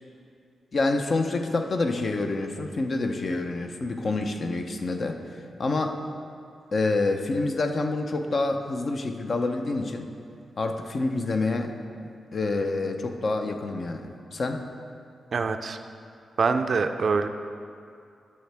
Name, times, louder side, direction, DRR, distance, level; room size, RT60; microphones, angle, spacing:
voice 1, 0.7-5.2 5.6-6.0 6.7-10.1 10.6-11.7 12.3-14.7, left 3 dB, 50° left, 5 dB, 0.6 m, -27 dB
voice 2, 15.3-15.8 16.4-17.3, right 4 dB, 55° right, 8 dB, 0.4 m, -24 dB
11.0 x 6.6 x 3.4 m, 2.5 s
cardioid pair, 90°, 0 cm